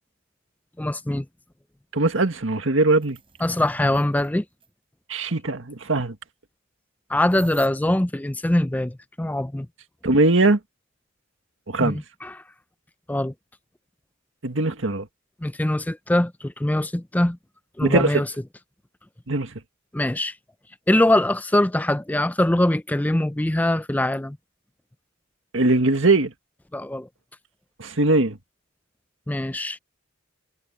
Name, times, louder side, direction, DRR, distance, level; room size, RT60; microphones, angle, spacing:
voice 1, 0.8-1.3 3.4-4.4 7.1-9.7 11.8-12.4 13.1-13.3 15.4-17.4 17.8-18.3 19.9-20.3 20.9-24.4 26.7-27.1 29.3-29.8, left 1 dB, 10° left, 0.5 m, -23 dB
voice 2, 1.9-3.2 5.1-6.1 10.0-10.6 11.7-12.0 14.4-15.1 17.8-18.2 19.3-19.6 25.5-26.3 27.8-28.4, right 2 dB, 75° right, 1.9 m, -20 dB
sound 1, 2.5-2.6 2.9-4.3 4.6-4.7 7.3-7.7, right 6 dB, 25° right, 4.6 m, -47 dB
head